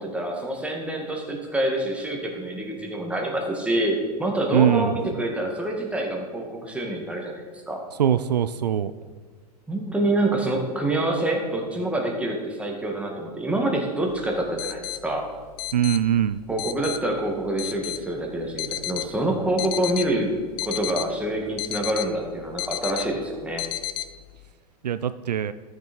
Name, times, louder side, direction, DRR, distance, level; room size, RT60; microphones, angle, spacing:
voice 1, 0.0-7.8 9.7-15.2 16.5-20.3 20.7-23.6, right 1 dB, 5° right, 0 dB, 2.2 m, -26 dB
voice 2, 4.5-4.9 8.0-8.9 15.7-16.4 24.8-25.5, right 9 dB, 85° right, 13 dB, 0.5 m, -22 dB
sound 1, 14.1-24.5, left 14 dB, 45° left, 0.6 m, -34 dB
13.5 x 6.6 x 4.6 m, 1.5 s
hypercardioid pair, 100°, 21 cm